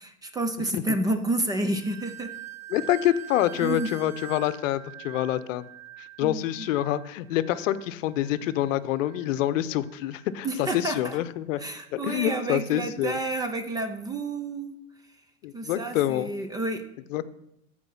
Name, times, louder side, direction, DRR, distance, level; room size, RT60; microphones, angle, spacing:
voice 1, 0.0-2.3 3.6-3.9 6.2-6.7 10.4-11.2 11.6-14.8 15.5-16.8, right 2 dB, 10° right, 8 dB, 0.4 m, -30 dB
sound 1, 1.4-10.4 10.7-11.1 11.7-11.9, right 14 dB, 40° right, 0.7 m, -45 dB
voice 2, 2.7-5.6 6.2-11.6 11.9-13.2 15.4-16.3 17.1-17.2, left 13 dB, 60° left, 14 dB, 0.8 m, -26 dB
14.0 x 4.8 x 5.6 m, 0.81 s
hypercardioid pair, 120°, 42 cm